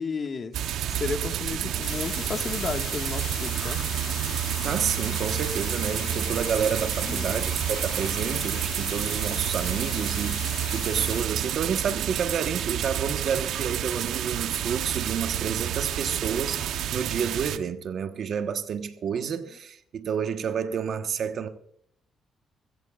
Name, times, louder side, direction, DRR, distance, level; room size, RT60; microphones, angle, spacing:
voice 1, 0.0-3.8 7.0-7.5 19.5-19.6, left 5 dB, 45° left, 1.6 m, -33 dB
sound 1, 0.5-17.6, right 10 dB, 80° right, 0.8 m, -29 dB
sound 2, 1.8-11.2, left 8 dB, 65° left, 1.6 m, -38 dB
voice 2, 4.6-21.5, right 7 dB, 65° right, 1.2 m, -30 dB
24.0 x 16.0 x 2.4 m
cardioid pair, 90°, 0 cm